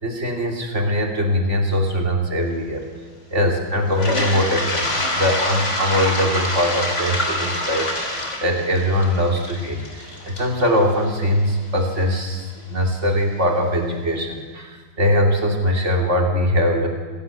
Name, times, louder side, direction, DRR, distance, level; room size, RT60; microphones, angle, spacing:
voice 1, 0.0-2.9 3.3-16.9, equal, 35° right, 2 dB, 3.1 m, -21 dB
Toilet flush, 3.9-11.8, left 1 dB, 35° left, 3.5 m, -26 dB
24.5 x 16.5 x 7.2 m, 1.5 s
omnidirectional pair, 2.0 m